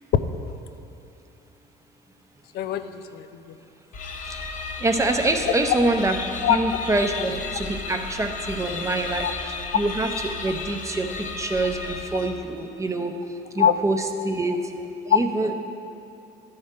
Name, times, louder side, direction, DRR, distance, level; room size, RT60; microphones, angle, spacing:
voice 1, 2.5-3.6 5.4-5.5 6.4-6.6 9.2-9.3 13.6-13.7 15.1-15.5, left 9 dB, 75° left, 10 dB, 0.5 m, -23 dB
sound 1, 3.9-12.6, left 4 dB, 50° left, 0.8 m, -34 dB
voice 2, 4.8-6.2 6.5-9.3 9.7-10.1 10.4-11.1 11.4-11.8 12.1-13.1 13.6-14.6 15.1-15.5, right 2 dB, 20° right, 5 dB, 0.6 m, -25 dB
12.0 x 4.2 x 5.2 m, 2.8 s
cardioid pair, 110°, 17 cm